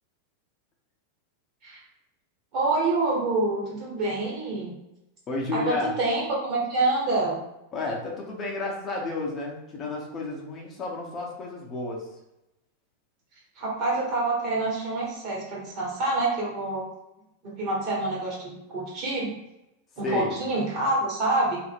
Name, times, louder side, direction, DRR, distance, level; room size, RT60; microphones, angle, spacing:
voice 1, 2.5-4.7 5.5-7.4 13.6-16.8 17.4-19.3 20.0-21.6, right 2 dB, 40° right, -4 dB, 1.2 m, -27 dB
voice 2, 5.3-5.9 7.7-12.1 20.0-20.4, left 2 dB, 30° left, -1 dB, 0.7 m, -31 dB
2.4 x 2.0 x 3.4 m, 0.90 s
figure-of-eight pair, 90°, 0 cm